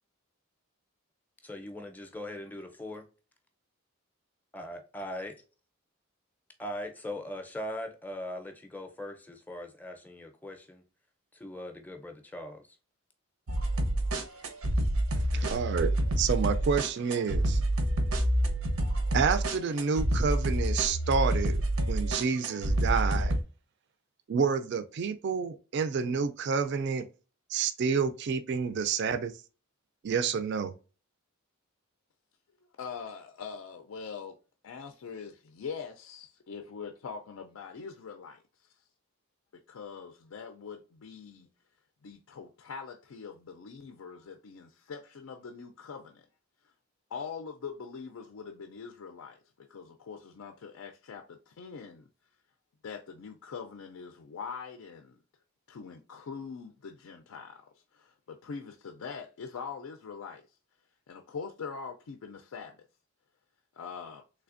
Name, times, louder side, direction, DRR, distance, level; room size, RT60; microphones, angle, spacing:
voice 1, 1.4-3.0 4.5-5.3 6.6-10.8 11.3-12.7, left 1 dB, 10° left, 0.5 m, -40 dB
sound 1, 13.5-23.4, right 1 dB, 85° right, 0.7 m, -28 dB
voice 2, 15.3-15.9 16.2-17.6 19.1-21.6 21.9-23.4 24.3-27.1 27.5-29.3 30.0-30.7, right 6 dB, 55° right, 0.3 m, -29 dB
voice 3, 32.8-34.4 34.6-38.4 39.7-41.5 42.0-46.2 47.1-49.4 49.7-52.0 52.8-55.2 55.7-57.6 57.9-60.4 61.1-62.8 63.8-64.2, left 5 dB, 75° left, 0.4 m, -43 dB
3.3 x 3.3 x 2.4 m
head